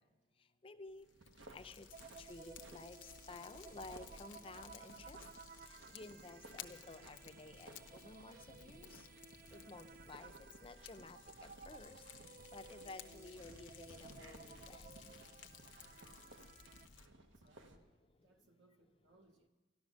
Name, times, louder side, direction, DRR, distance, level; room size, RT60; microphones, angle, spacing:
voice 1, 0.6-1.0 1.5-1.9 2.2-3.0 3.3-5.2 5.9-8.9 9.5-10.3 10.6-11.2 11.7-12.0 12.5-14.8, left 3 dB, 30° left, 10 dB, 0.5 m, -53 dB
Fire, 0.9-17.1, left 8 dB, 70° left, 0.8 m, -58 dB
sound 1, 1.0-17.8, right 2 dB, 80° right, 1.2 m, -60 dB
sound 2, 1.9-16.9, right 5 dB, 50° right, 0.4 m, -58 dB
voice 2, 17.1-18.0 18.2-19.5, right 2 dB, 65° right, 4 dB, 0.9 m, -70 dB
12.5 x 12.5 x 6.3 m, 1.2 s
head